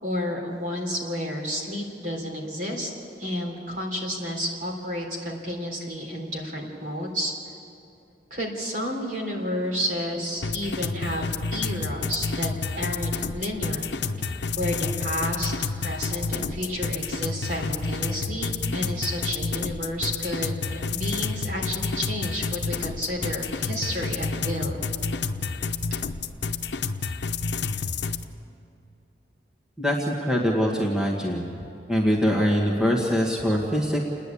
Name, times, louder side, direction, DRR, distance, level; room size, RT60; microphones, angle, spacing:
voice 1, 0.0-2.9 3.2-7.3 8.3-13.9 14.6-24.8, equal, 50° right, 0 dB, 3.5 m, -31 dB
sound 1, 10.4-28.2, left 4 dB, 85° left, 0.8 m, -29 dB
voice 2, 29.8-31.5 31.9-34.0, equal, 5° right, -2 dB, 1.6 m, -23 dB
29.5 x 10.5 x 8.5 m, 2.7 s
head